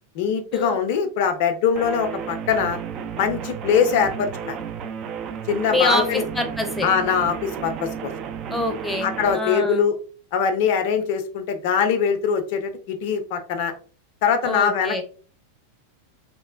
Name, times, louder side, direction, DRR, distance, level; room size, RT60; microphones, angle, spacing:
voice 1, 0.1-2.8 3.2-4.6 5.5-6.2 6.8-8.1 9.0-10.0 10.3-13.7 14.2-15.0, left 7 dB, 50° left, 7 dB, 0.5 m, -22 dB
sound 1, 1.8-9.4, right 7 dB, 35° right, 0.3 m, -33 dB
voice 2, 5.7-6.9 8.5-9.8 14.4-15.0, left 1 dB, 5° left, 4 dB, 0.6 m, -25 dB
3.0 x 2.0 x 2.5 m, 0.41 s
figure-of-eight pair, 90°, 0 cm